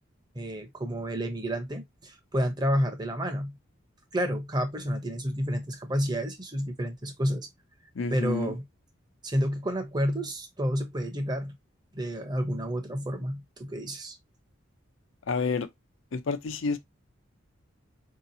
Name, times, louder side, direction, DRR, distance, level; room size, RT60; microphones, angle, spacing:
voice 1, 0.3-3.6 4.1-7.5 8.1-8.7 9.2-11.6 11.9-14.2, equal, 20° right, 0.7 m, -30 dB
voice 2, 8.0-8.5 15.3-15.7 16.1-16.8, left 4 dB, 75° left, 0.6 m, -29 dB
4.6 x 2.9 x 2.7 m
head